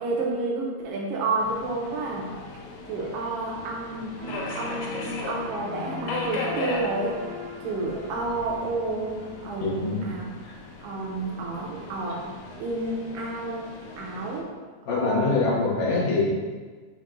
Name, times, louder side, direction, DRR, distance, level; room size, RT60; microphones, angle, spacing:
voice 1, 0.0-2.3 2.9-4.2 4.5-7.2 7.6-10.3 10.8-12.3 12.6-13.7 14.0-14.5 14.9-15.4, right 2 dB, 85° right, -3 dB, 1.3 m, -30 dB
Subway metro underground, 1.4-14.4, left 3 dB, 90° left, 2.1 m, -38 dB
sound 1, 4.2-10.1, left 2 dB, 55° right, 2.0 m, -40 dB
voice 2, 9.6-10.2 10.4-10.6 14.9-16.2, left 3 dB, 65° left, -6 dB, 2.2 m, -24 dB
6.7 x 2.9 x 2.4 m, 1.4 s
omnidirectional pair, 3.4 m